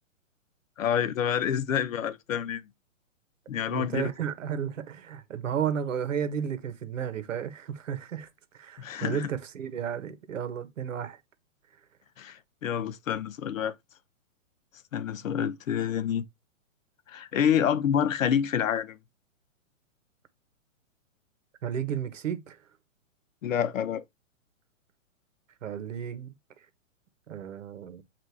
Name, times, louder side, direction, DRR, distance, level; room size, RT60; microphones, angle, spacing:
voice 1, 0.8-2.7 3.5-4.1 8.8-9.3 12.2-13.7 14.9-16.2 17.1-19.0 23.4-24.0, left 8 dB, 75° left, 0.9 m, -28 dB
voice 2, 3.7-8.3 8.5-11.2 21.6-22.6 25.6-26.3 27.3-28.0, right 8 dB, 70° right, 1.3 m, -33 dB
7.6 x 2.6 x 4.7 m
hypercardioid pair, 165°, 40 cm